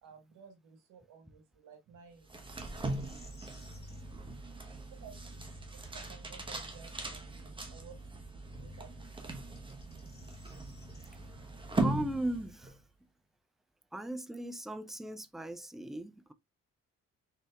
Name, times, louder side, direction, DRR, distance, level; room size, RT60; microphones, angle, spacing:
voice 1, 0.0-2.5 5.0-9.5, right 6 dB, 90° right, 1.2 m, -56 dB
sound 1, 2.2-12.8, right 2 dB, 15° right, 0.9 m, -39 dB
sound 2, 2.7-4.0 7.2-7.3 9.4-11.1, left 3 dB, 35° left, 1.8 m, -59 dB
voice 2, 11.8-12.8 13.9-16.3, right 1 dB, ahead, 0.3 m, -38 dB
4.1 x 3.4 x 2.2 m
cardioid pair, 90°, 30 cm